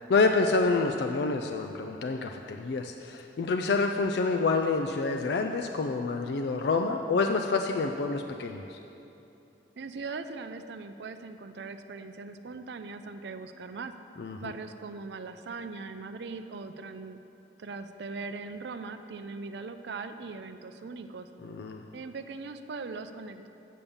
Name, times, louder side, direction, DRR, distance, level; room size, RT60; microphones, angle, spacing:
voice 1, 0.1-8.8 14.2-14.5 21.4-21.8, left 3 dB, 65° left, 4 dB, 0.4 m, -28 dB
voice 2, 9.8-13.9 14.4-17.2 17.6-21.3 21.9-23.5, right 4 dB, 70° right, 9 dB, 0.4 m, -40 dB
8.4 x 5.3 x 7.0 m, 2.9 s
head